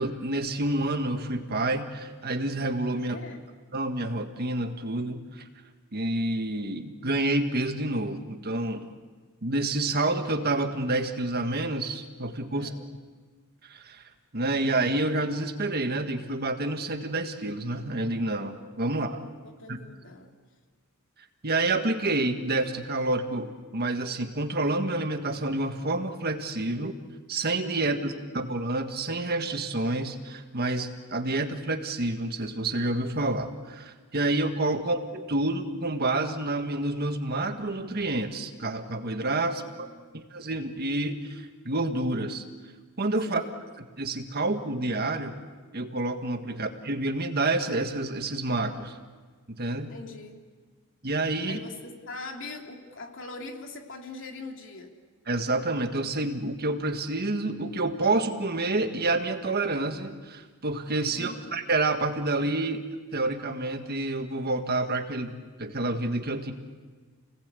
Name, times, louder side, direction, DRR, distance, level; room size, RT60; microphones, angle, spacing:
voice 1, 0.0-3.2 3.7-5.4 5.9-8.9 9.4-12.7 13.6-14.0 14.3-19.2 19.7-19.8 21.4-26.9 27.3-39.6 40.1-42.4 43.0-43.4 44.0-45.3 45.7-49.0 49.5-49.9 51.0-51.6 55.3-62.8 63.1-66.5, right 2 dB, 45° right, 6 dB, 1.7 m, -28 dB
voice 2, 3.1-3.5 12.5-12.8 19.2-20.3 26.7-26.8 27.9-28.3 34.8-34.9 39.6-40.2 43.3-43.6 46.5-46.7 49.9-50.4 51.5-54.9 61.1-61.6, left 3 dB, 60° left, 2 dB, 3.1 m, -43 dB
30.0 x 19.0 x 8.4 m, 1.4 s
head